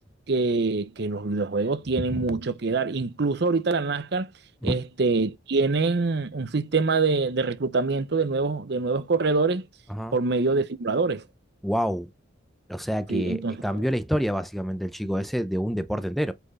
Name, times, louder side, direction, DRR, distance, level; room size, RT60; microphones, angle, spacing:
voice 1, 0.3-4.3 4.6-9.6 10.1-11.2 13.1-13.8, right 3 dB, 55° right, 0.7 m, -25 dB
voice 2, 11.6-12.1 12.7-16.3, equal, ahead, 0.5 m, -27 dB
8.1 x 4.4 x 4.1 m
head